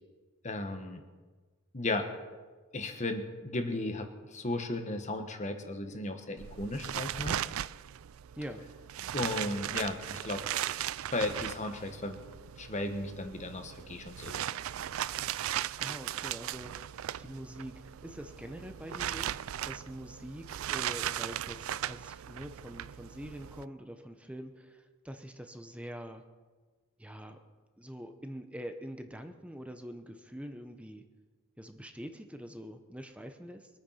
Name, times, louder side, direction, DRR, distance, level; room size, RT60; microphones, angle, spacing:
voice 1, 0.4-1.0 1.7-2.1 2.7-7.4 9.1-10.4 11.1-12.2 12.6-14.4, left 2 dB, 35° left, 6 dB, 1.4 m, -35 dB
sound 1, 6.4-23.6, right 11 dB, 80° right, 0.4 m, -38 dB
voice 2, 8.3-8.7 15.8-19.4 19.6-26.2 27.0-27.4 27.8-31.0 31.6-33.7, equal, 5° right, 7 dB, 0.9 m, -45 dB
23.0 x 9.1 x 5.8 m, 1.4 s
head